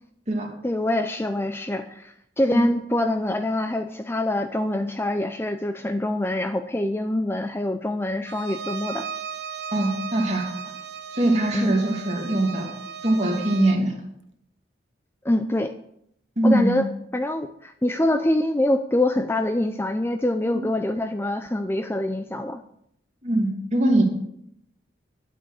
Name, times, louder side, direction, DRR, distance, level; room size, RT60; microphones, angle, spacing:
voice 1, 0.6-9.1 11.5-11.7 15.2-15.7 16.4-16.8 17.1-22.6, left 1 dB, 10° left, 8 dB, 0.5 m, -25 dB
Bowed string instrument, 8.3-13.9, right 7 dB, 60° right, 0.9 m, -36 dB
voice 2, 9.7-10.5 11.1-12.7 13.0-14.0 16.4-16.8 20.5-20.6 23.2-24.0, right 1 dB, 35° right, 0 dB, 2.7 m, -22 dB
11.0 x 8.8 x 6.4 m, 0.73 s
head